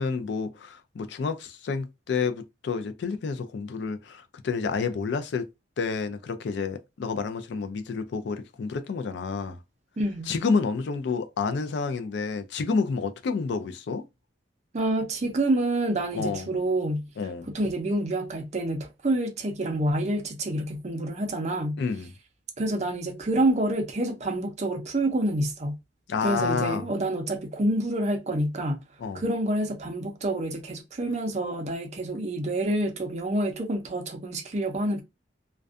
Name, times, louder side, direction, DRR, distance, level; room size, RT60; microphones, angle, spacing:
voice 1, 0.0-5.5 5.8-9.6 10.3-14.0 16.1-16.5 17.2-17.5 21.8-22.1 26.1-26.9 29.0-29.2, left 5 dB, 60° left, 0.3 m, -29 dB
voice 2, 10.0-10.3 14.7-17.1 17.5-21.8 22.6-25.8 26.2-28.8 29.1-35.0, right 1 dB, 35° right, 0.5 m, -27 dB
2.5 x 2.2 x 2.4 m
head